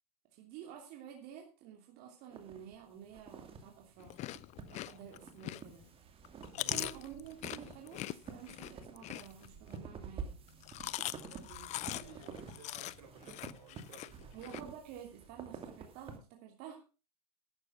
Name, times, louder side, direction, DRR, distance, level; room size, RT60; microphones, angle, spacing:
voice 1, 0.3-4.3 4.7-5.9 6.6-10.4 14.3-16.8, right 9 dB, 50° right, 2 dB, 3.0 m, -50 dB
sound 1, 2.3-16.2, right 5 dB, 30° right, 2.5 m, -49 dB
Chewing mastication, 4.0-5.9 6.2-9.8 10.5-14.6, left 15 dB, 35° left, 0.5 m, -42 dB
voice 2, 6.5-6.9 11.2-14.4, right 6 dB, 80° right, 5 dB, 4.9 m, -56 dB
12.0 x 8.8 x 5.8 m, 0.34 s
hypercardioid pair, 115°, 20 cm